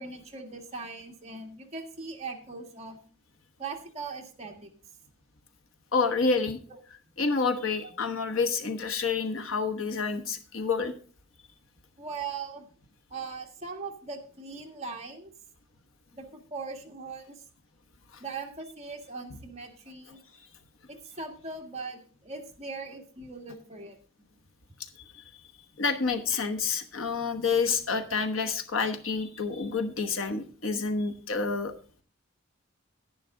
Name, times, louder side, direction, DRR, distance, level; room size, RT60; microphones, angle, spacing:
voice 1, 0.0-3.0 3.6-4.7 7.8-7.9 12.0-12.7 13.1-15.3 16.1-17.4 18.2-20.2 20.9-24.0, right 4 dB, 35° right, 2 dB, 1.7 m, -40 dB
voice 2, 5.9-6.6 7.2-10.9 18.1-18.2 25.1-25.2 25.8-31.7, left 4 dB, 80° left, 7 dB, 1.2 m, -28 dB
10.5 x 10.5 x 3.8 m, 0.41 s
head